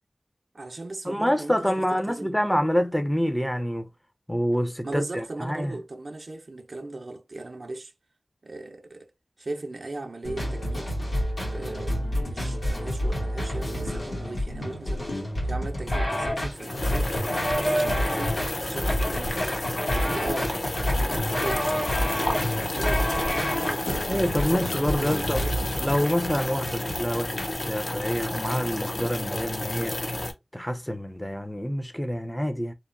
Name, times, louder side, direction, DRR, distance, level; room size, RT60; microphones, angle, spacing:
voice 1, 0.5-2.3 4.8-7.9 8.4-9.1 9.4-10.9 11.5-15.1 15.4-17.1 17.6-19.6 19.9-22.2 22.7-25.5, right 2 dB, 65° right, 0.5 m, -38 dB
voice 2, 1.1-3.9 4.3-5.7 24.1-25.4 25.8-30.1 30.5-32.7, equal, 10° left, 0.4 m, -27 dB
sound 1, 10.2-27.5, equal, 85° left, 1.4 m, -28 dB
sound 2, 16.5-30.3, left 1 dB, 65° left, 0.6 m, -31 dB
2.8 x 2.1 x 2.5 m
cardioid pair, 40°, 0 cm